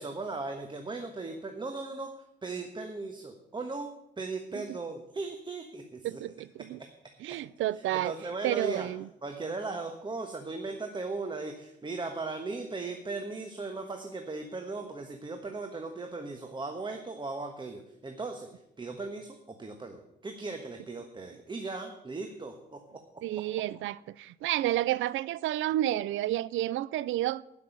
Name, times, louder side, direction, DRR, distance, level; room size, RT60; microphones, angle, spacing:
voice 1, 0.0-2.1 2.4-6.2 6.8-6.9 7.7-8.9 9.2-18.5 18.8-23.0 23.3-23.4, right 3 dB, 25° right, 1.3 m, -37 dB
voice 2, 6.0-6.8 7.2-8.1 8.4-9.1 23.2-27.4, right 14 dB, 80° right, 0.4 m, -30 dB
11.5 x 6.1 x 9.2 m
cardioid pair, 90°, 20 cm